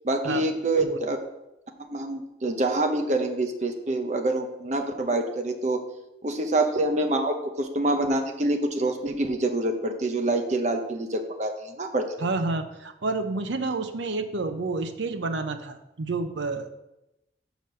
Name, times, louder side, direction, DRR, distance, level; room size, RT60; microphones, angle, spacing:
voice 1, 0.0-1.2 1.9-5.8 6.2-12.0, right 2 dB, 40° right, 5 dB, 0.8 m, -26 dB
voice 2, 12.2-16.7, right 3 dB, 85° right, 8 dB, 0.7 m, -29 dB
5.7 x 5.2 x 6.4 m, 0.91 s
head